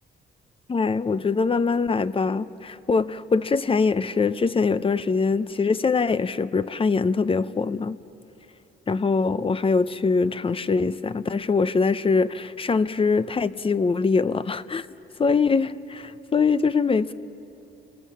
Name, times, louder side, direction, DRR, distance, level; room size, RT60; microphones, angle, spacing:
voice 1, 0.7-8.0 8.9-14.9 15.2-17.1, left 4 dB, 25° left, 15 dB, 0.7 m, -23 dB
29.0 x 19.5 x 7.3 m, 2.9 s
cardioid pair, 90°, 20 cm